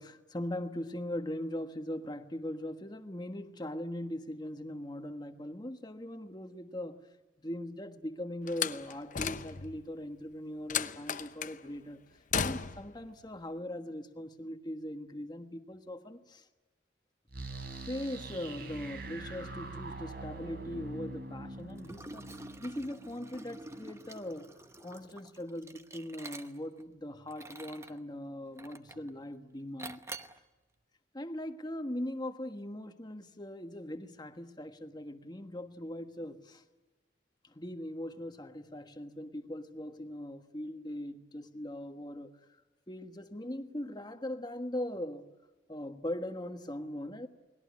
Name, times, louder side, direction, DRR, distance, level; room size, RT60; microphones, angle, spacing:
voice 1, 0.0-7.0 7.4-12.0 12.4-16.4 17.9-22.3 22.6-24.5 24.8-30.3 31.1-36.6 37.4-42.3 42.9-45.3 45.7-47.3, left 1 dB, 25° left, 1.4 m, -40 dB
Slam, 8.5-9.8 10.7-11.6 12.3-12.9, left 7 dB, 45° left, 0.8 m, -34 dB
sound 1, 17.3-24.1, right 2 dB, 55° right, 4.2 m, -44 dB
Liquid, 21.8-26.8 27.3-28.0 28.6-29.1 29.8-30.4, right 2 dB, 15° right, 0.9 m, -47 dB
29.5 x 20.0 x 9.7 m
head